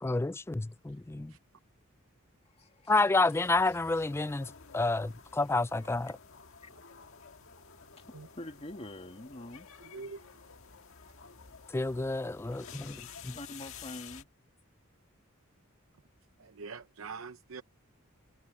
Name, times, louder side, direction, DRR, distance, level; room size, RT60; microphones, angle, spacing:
voice 1, 0.0-1.3 2.9-6.2 11.7-13.4, left 3 dB, 10° left, 0.3 m, -30 dB
voice 2, 2.4-3.0 3.3-3.8 6.6-6.7 8.0-9.7 13.3-14.3, left 1 dB, 30° left, 2.2 m, -46 dB
sound 1, 3.3-14.2, left 6 dB, 75° left, 1.6 m, -51 dB
voice 3, 16.4-17.6, right 4 dB, 80° right, 0.8 m, -43 dB
head